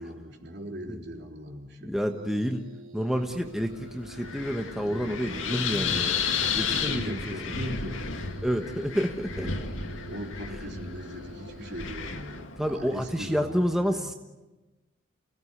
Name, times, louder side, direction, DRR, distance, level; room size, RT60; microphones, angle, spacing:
voice 1, 0.0-1.9 4.8-6.1 6.4-8.2 9.4-14.1, equal, 55° right, 2 dB, 3.6 m, -40 dB
voice 2, 1.8-2.6 2.9-7.3 8.4-9.5 12.6-14.1, equal, ahead, 4 dB, 1.2 m, -29 dB
sound 1, 2.1-11.9, right 2 dB, 85° right, 5.0 m, -48 dB
Wind, 3.2-13.3, left 6 dB, 75° left, 2.0 m, -33 dB
29.5 x 17.5 x 9.8 m, 1.1 s
head